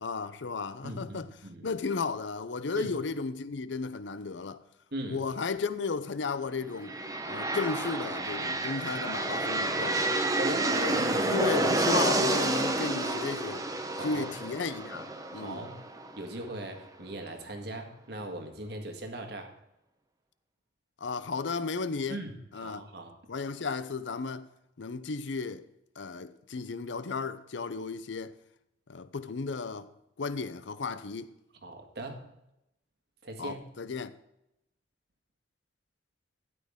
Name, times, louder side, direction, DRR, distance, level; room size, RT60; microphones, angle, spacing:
voice 1, 0.0-1.3 1.6-4.6 5.0-7.0 7.2-10.0 10.7-13.7 14.0-15.7 21.0-22.2 22.5-22.8 23.3-24.5 24.8-25.7 26.0-28.3 28.9-29.9 30.2-31.3 33.4-34.1, left 4 dB, 80° left, 0.6 m, -34 dB
voice 2, 0.8-1.2 1.4-1.7 2.8-2.9 4.9-5.2 10.4-11.7 13.9-14.3 15.3-15.8 16.2-19.5 22.1-23.2 31.6-32.3 33.2-33.7, right 1 dB, 60° right, 1.7 m, -39 dB
sound 1, 6.8-16.6, right 2 dB, 20° right, 0.9 m, -29 dB
12.5 x 9.7 x 3.6 m
head